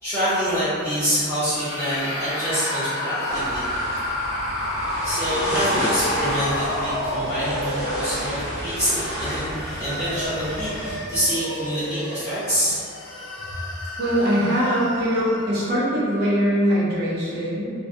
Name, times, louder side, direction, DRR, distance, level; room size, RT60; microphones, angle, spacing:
voice 1, 0.0-3.6 5.0-8.9 9.2-9.5 9.8-12.8, equal, 15° left, -17 dB, 0.7 m, -26 dB
sound 1, 1.4-8.5 9.2-15.7, left 1 dB, 85° left, 0.6 m, -30 dB
sound 2, 3.3-10.9, equal, 20° right, 0.8 m, -30 dB
voice 2, 14.0-17.7, equal, 50° right, -7 dB, 0.6 m, -22 dB
2.2 x 2.1 x 2.7 m, 2.3 s
head